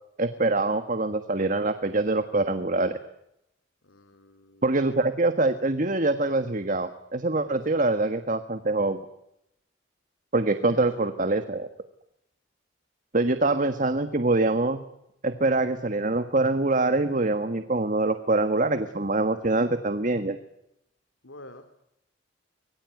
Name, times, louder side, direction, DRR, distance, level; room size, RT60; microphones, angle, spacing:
voice 1, 0.2-3.0 4.6-9.0 10.3-11.7 13.1-14.8 15.2-20.4, right 2 dB, 45° right, 9 dB, 1.6 m, -24 dB
voice 2, 3.8-4.6 7.5-7.8 10.6-11.1 21.2-21.6, left 2 dB, 90° left, 8 dB, 2.8 m, -47 dB
25.0 x 22.5 x 9.4 m, 0.80 s
head